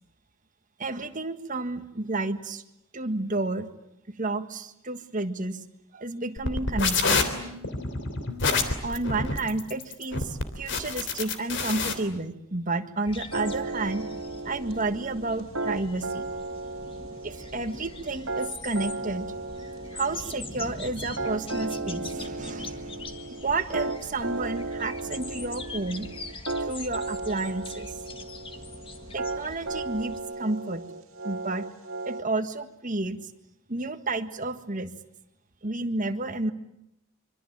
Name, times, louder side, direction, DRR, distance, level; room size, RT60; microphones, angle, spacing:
voice 1, 0.8-2.6 2.9-3.7 4.1-5.6 5.9-7.2 8.8-14.1 14.4-16.3 17.2-19.3 19.9-26.1 26.6-27.9 29.1-30.8 31.2-31.7 32.0-33.3 33.7-34.9 35.6-36.5, right 2 dB, 40° right, 8 dB, 1.7 m, -31 dB
sound 1, 6.4-11.9, left 4 dB, 60° left, 3.3 m, -27 dB
sound 2, 13.0-30.2, left 3 dB, 25° left, 1.8 m, -42 dB
sound 3, 13.3-32.2, right 2 dB, 80° right, 2.4 m, -35 dB
26.0 x 24.5 x 8.8 m, 0.82 s
head